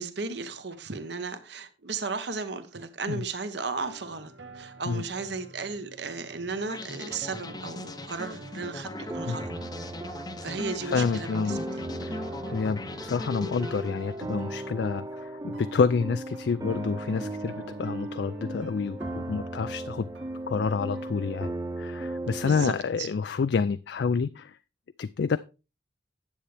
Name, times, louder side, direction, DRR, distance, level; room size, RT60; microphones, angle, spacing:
voice 1, 0.0-9.5 10.4-11.6 22.4-23.1, right 4 dB, 65° right, 1.1 m, -35 dB
sound 1, 3.9-22.4, right 2 dB, 85° right, 1.4 m, -50 dB
sound 2, 6.7-14.4, left 2 dB, 20° left, 0.6 m, -40 dB
sound 3, 8.9-22.7, right 1 dB, 20° right, 0.5 m, -37 dB
voice 2, 10.9-11.6 12.0-20.1 20.5-24.6 25.0-25.4, left 5 dB, 65° left, 0.3 m, -28 dB
10.0 x 8.0 x 3.3 m
head